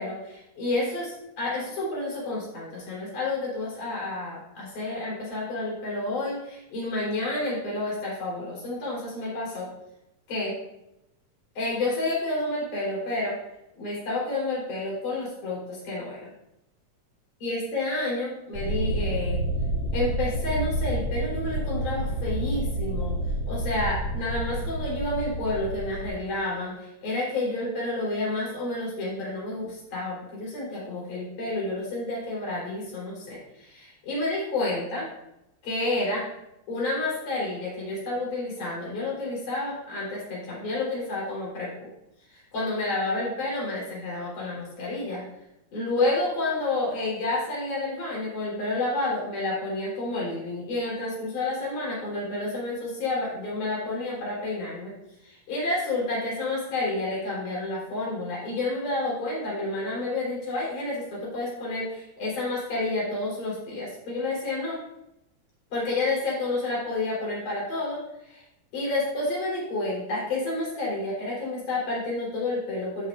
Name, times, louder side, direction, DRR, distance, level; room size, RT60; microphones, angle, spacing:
voice 1, 0.0-9.7 10.3-10.6 11.6-13.4 13.8-16.3 17.4-19.4 19.9-23.2 23.5-35.1 35.6-36.3 36.7-41.9 42.3-45.3 45.7-54.9 55.2-64.8 65.7-68.0 68.3-68.4 68.7-73.1, left 2 dB, 80° left, -6 dB, 5.3 m, -30 dB
sound 1, 18.5-26.1, right 1 dB, 45° left, 2.3 m, -29 dB
15.0 x 6.1 x 2.5 m, 0.86 s
omnidirectional pair, 3.6 m